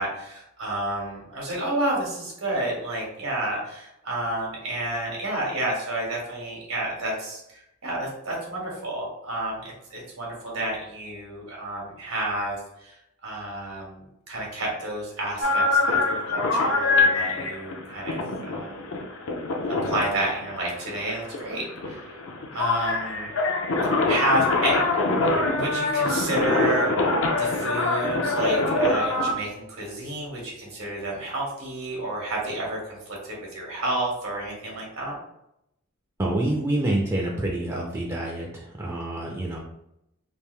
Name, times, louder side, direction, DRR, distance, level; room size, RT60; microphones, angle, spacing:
voice 1, 0.0-18.2 18.5-18.9 19.7-22.1 22.5-23.3 24.1-24.8 25.2-26.9 27.3-33.0 33.2-35.2, right 1 dB, 90° right, -3 dB, 1.5 m, -30 dB
sound 1, 15.4-29.3, left 2 dB, 70° left, 0.6 m, -24 dB
voice 2, 36.2-39.6, right 1 dB, 15° right, -2 dB, 0.4 m, -27 dB
3.5 x 2.5 x 3.2 m, 0.82 s
head